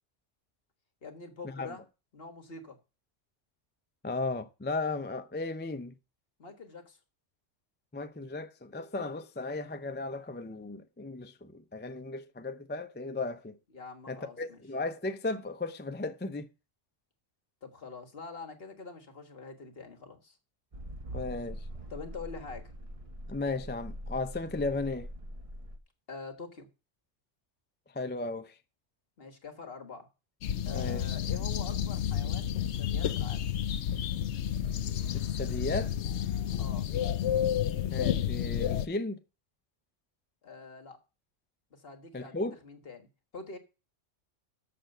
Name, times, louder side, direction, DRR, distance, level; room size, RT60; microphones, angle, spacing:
voice 1, 1.0-1.8 2.1-2.8 6.4-7.0 13.7-14.6 17.6-20.4 21.9-22.7 26.1-26.7 29.2-30.1 30.6-33.4 36.6-36.9 40.4-41.0 41.7-43.1 43.3-43.6, left 4 dB, 50° left, 1.7 m, -45 dB
voice 2, 4.0-5.9 7.9-13.6 14.1-16.5 21.1-21.6 23.3-25.1 27.9-28.5 30.7-31.1 35.1-35.9 37.9-39.2 42.1-42.5, left 3 dB, 20° left, 0.3 m, -35 dB
sound 1, 20.7-25.8, equal, 30° right, 1.0 m, -43 dB
sound 2, 30.4-38.9, left 10 dB, 70° left, 0.9 m, -31 dB
6.8 x 6.7 x 7.7 m
omnidirectional pair, 1.3 m